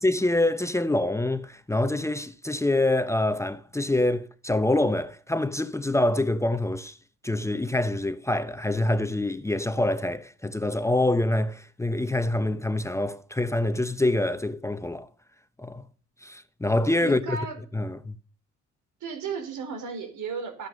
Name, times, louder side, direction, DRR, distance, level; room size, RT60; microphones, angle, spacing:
voice 1, 0.0-7.0 7.2-15.1 15.6-15.8 16.2-17.4 17.7-18.1, left 1 dB, 10° left, 0.9 m, -25 dB
voice 2, 17.0-17.6 19.0-20.7, right 5 dB, 80° right, 4.2 m, -34 dB
13.0 x 9.3 x 5.2 m
cardioid pair, 90°, 30 cm